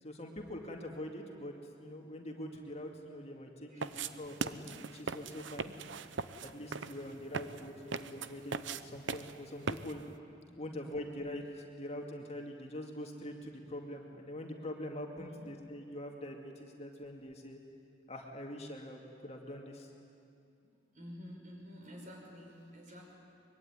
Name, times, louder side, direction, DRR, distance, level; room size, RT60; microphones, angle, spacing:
voice 1, 0.0-5.7 6.4-10.0 10.6-17.6 18.1-19.9, left 1 dB, 35° left, 1 dB, 2.3 m, -44 dB
voice 2, 3.6-4.1 6.9-7.3 10.5-10.8 15.1-15.5 20.9-23.1, equal, 40° right, 0 dB, 5.8 m, -51 dB
sound 1, 3.8-10.1, right 4 dB, 70° right, 0.9 m, -40 dB
24.5 x 22.5 x 9.7 m, 2.5 s
head